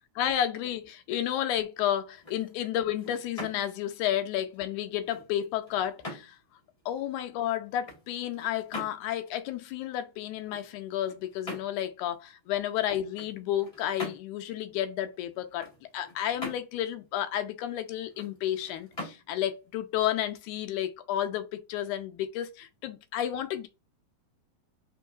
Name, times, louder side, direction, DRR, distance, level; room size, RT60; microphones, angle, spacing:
voice 1, 0.2-6.4 6.9-23.7, left 11 dB, 80° left, 1.9 m, -31 dB
sound 1, 2.0-20.9, left 1 dB, 35° left, 0.5 m, -46 dB
4.6 x 3.5 x 2.3 m
omnidirectional pair, 3.7 m